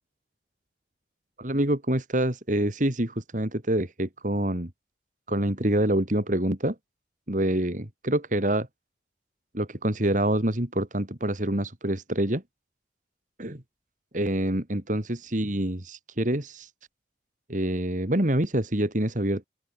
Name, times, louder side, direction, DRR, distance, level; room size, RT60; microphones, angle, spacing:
voice 1, 1.4-4.7 5.3-6.7 7.3-8.7 9.5-12.4 13.4-13.6 14.1-16.7 17.5-19.5, right 1 dB, 45° right, 2.7 m, -26 dB
open air
head